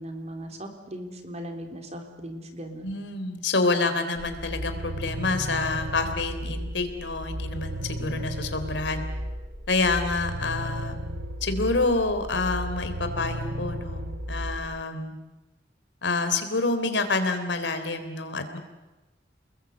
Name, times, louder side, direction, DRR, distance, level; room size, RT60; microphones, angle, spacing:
voice 1, 0.0-3.0, equal, 35° right, 4 dB, 3.7 m, -38 dB
voice 2, 2.8-9.0 9.7-11.0 11.4-15.2 16.0-18.6, left 3 dB, 70° left, 8 dB, 3.5 m, -27 dB
sound 1, 4.2-14.8, equal, 60° right, 3.2 m, -34 dB
30.0 x 21.0 x 8.2 m, 1.1 s
head